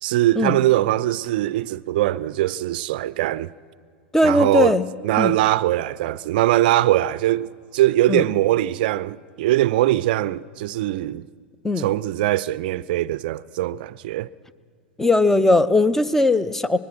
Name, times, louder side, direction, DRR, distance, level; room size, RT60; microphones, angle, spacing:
voice 1, 0.0-3.5 4.2-4.7 5.0-11.3 11.8-14.3, right 15 dB, 55° right, 0.5 m, -21 dB
voice 2, 4.1-4.9 5.2-5.3 8.1-8.3 11.6-11.9 15.0-16.8, left 2 dB, 5° left, 0.7 m, -18 dB
24.5 x 20.0 x 6.2 m
figure-of-eight pair, 95°, 6 cm